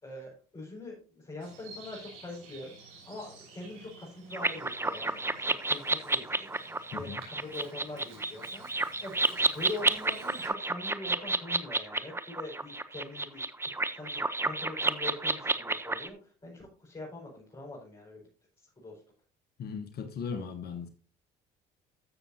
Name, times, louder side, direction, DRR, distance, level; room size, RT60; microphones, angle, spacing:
voice 1, 0.0-6.5 6.9-13.5 13.7-18.2 18.6-19.0, left 2 dB, 25° left, 5.5 m, -43 dB
Bird vocalization bird call bird song, 1.4-10.5, right 4 dB, 85° right, 5.7 m, -52 dB
sound 1, 4.3-16.1, right 2 dB, 10° right, 0.8 m, -31 dB
voice 2, 6.9-7.2 19.6-20.9, left 5 dB, 55° left, 1.2 m, -37 dB
14.0 x 6.9 x 2.8 m
supercardioid pair, 80°, 20 cm